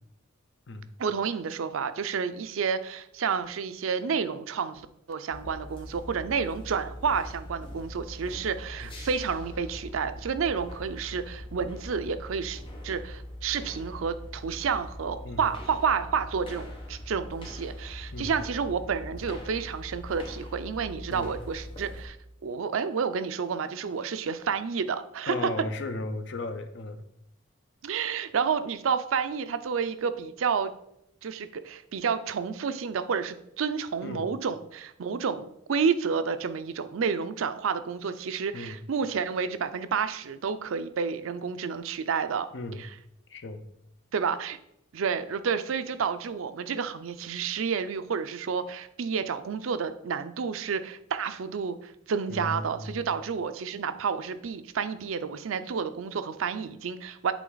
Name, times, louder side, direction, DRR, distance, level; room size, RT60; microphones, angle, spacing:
voice 1, 1.0-22.2 22.4-25.5 27.8-30.7 31.2-42.5 42.8-42.9 44.1-44.6 44.9-57.3, right 6 dB, 80° right, 11 dB, 0.4 m, -30 dB
sound 1, 5.3-22.1, left 1 dB, 25° left, 1.0 m, -42 dB
voice 2, 25.3-27.0 34.0-34.3 38.5-38.8 42.5-42.8 43.3-43.6 52.3-53.0, left 2 dB, 60° left, 8 dB, 0.6 m, -36 dB
8.3 x 3.3 x 3.9 m, 0.79 s
head